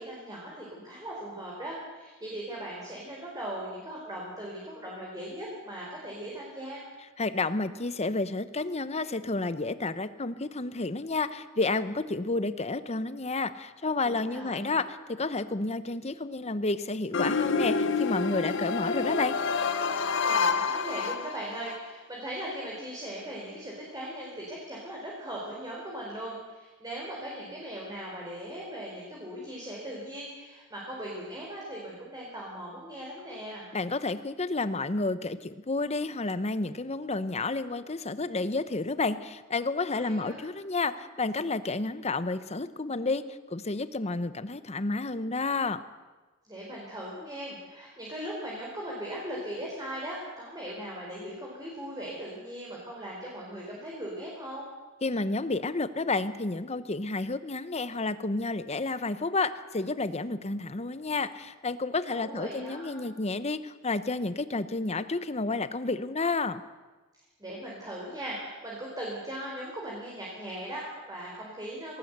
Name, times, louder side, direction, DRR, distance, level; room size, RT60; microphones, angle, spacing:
voice 1, 0.0-6.8 14.3-14.8 20.2-33.7 40.0-40.4 46.4-54.7 62.1-63.0 67.4-72.0, right 1 dB, 20° right, -4 dB, 4.4 m, -39 dB
voice 2, 7.2-19.4 33.7-45.8 55.0-66.6, left 3 dB, 30° left, 13 dB, 0.9 m, -30 dB
sound 1, 17.1-21.8, left 4 dB, 65° left, 1.2 m, -28 dB
19.5 x 18.0 x 8.2 m, 1.2 s
head